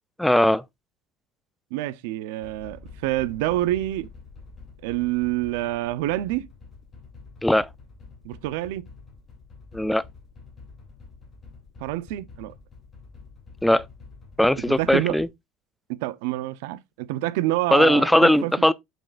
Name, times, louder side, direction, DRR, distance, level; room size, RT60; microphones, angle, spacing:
voice 1, 0.2-0.6 7.4-7.7 9.7-10.0 13.6-13.8 14.4-15.3 17.7-18.7, left 1 dB, ahead, 0.3 m, -19 dB
voice 2, 1.7-4.1 4.8-6.5 8.2-8.8 11.8-12.5 14.7-15.2 16.0-18.5, right 15 dB, 80° right, 0.6 m, -27 dB
sound 1, 2.4-15.3, left 4 dB, 20° left, 2.6 m, -47 dB
7.3 x 5.4 x 2.4 m
cardioid pair, 170°, 0 cm